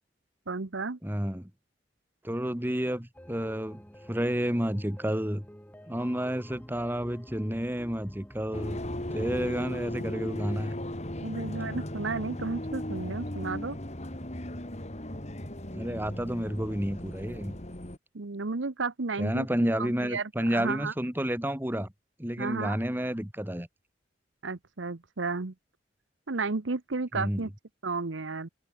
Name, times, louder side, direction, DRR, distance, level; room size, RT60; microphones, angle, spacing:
voice 1, 0.5-1.0 11.2-13.8 18.1-19.5 19.7-20.9 22.4-22.8 24.4-25.5 26.3-27.5 27.8-28.5, right 3 dB, 85° right, 1.0 m, -33 dB
voice 2, 1.0-1.5 2.2-3.8 4.1-5.5 5.9-8.8 9.1-10.7 15.7-17.6 19.2-21.9 22.2-23.7 27.1-27.5, equal, 10° right, 2.6 m, -30 dB
sound 1, 3.1-9.4, equal, 10° left, 7.7 m, -50 dB
sound 2, 8.5-18.0, left 1 dB, 35° left, 3.6 m, -37 dB
head